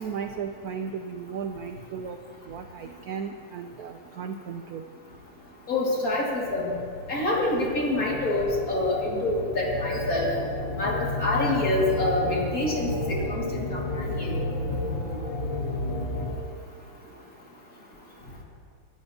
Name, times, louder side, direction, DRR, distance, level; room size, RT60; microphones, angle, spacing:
voice 1, 0.0-2.2 2.4-4.8, right 6 dB, 75° right, 6 dB, 0.8 m, -35 dB
voice 2, 5.7-6.7 7.1-10.3 10.8-12.9 13.2-14.4, left 2 dB, 45° left, -3 dB, 2.6 m, -26 dB
sound 1, 6.5-16.4, left 2 dB, 25° left, 2.2 m, -32 dB
22.0 x 11.5 x 2.8 m, 2.2 s
omnidirectional pair, 2.2 m